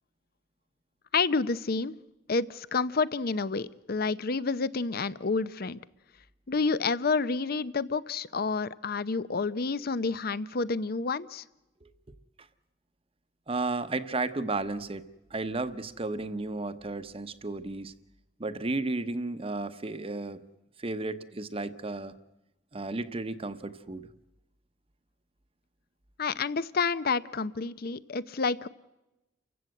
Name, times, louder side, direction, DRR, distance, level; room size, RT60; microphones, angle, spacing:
voice 1, 1.1-1.9 2.3-5.8 6.5-11.4 26.2-28.7, left 4 dB, 55° left, 17 dB, 0.7 m, -29 dB
voice 2, 13.5-17.9 18.4-20.4 20.8-22.1 22.7-24.1, right 2 dB, 30° right, 11 dB, 0.9 m, -33 dB
29.5 x 16.0 x 7.8 m, 0.98 s
head